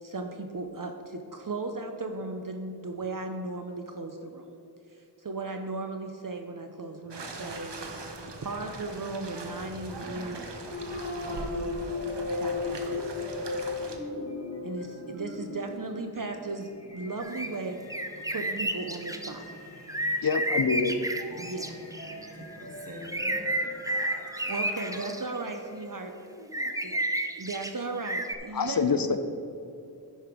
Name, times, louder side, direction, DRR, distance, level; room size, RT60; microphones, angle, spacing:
voice 1, 0.0-4.5 5.2-7.7 8.2-10.4 11.2-12.0 12.4-13.1 14.6-17.8 18.3-19.5 21.4-21.7 24.5-26.1 26.9-27.0 27.4-29.0, right 3 dB, 50° right, 5 dB, 0.7 m, -36 dB
sound 1, 7.1-14.0, right 2 dB, 85° right, 0.9 m, -41 dB
sound 2, 10.7-25.2, left 3 dB, 40° left, 1.4 m, -38 dB
sound 3, 17.2-17.5 17.9-19.3 19.9-22.3 23.0-25.5 26.5-27.7 28.0-28.3, right 1 dB, 10° right, 0.5 m, -31 dB
voice 2, 20.2-20.9 28.5-29.2, left 5 dB, 60° left, 9 dB, 0.5 m, -25 dB
voice 3, 21.3-24.5 24.9-26.7, equal, 35° right, 0 dB, 1.6 m, -47 dB
10.5 x 5.6 x 4.9 m, 2.7 s
wide cardioid pair, 50°, 41 cm